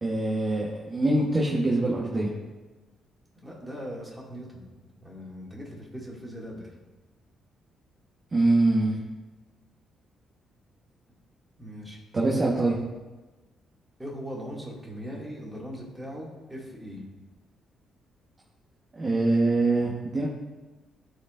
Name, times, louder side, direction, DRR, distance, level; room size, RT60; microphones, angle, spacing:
voice 1, 0.0-2.3 8.3-9.0 12.1-12.7 18.9-20.3, right 2 dB, 35° right, -4 dB, 1.2 m, -24 dB
voice 2, 3.4-6.7 11.6-12.4 14.0-17.0, equal, 5° right, -4 dB, 2.2 m, -40 dB
12.5 x 4.6 x 2.5 m, 1.2 s
cardioid pair, 85°, 0 cm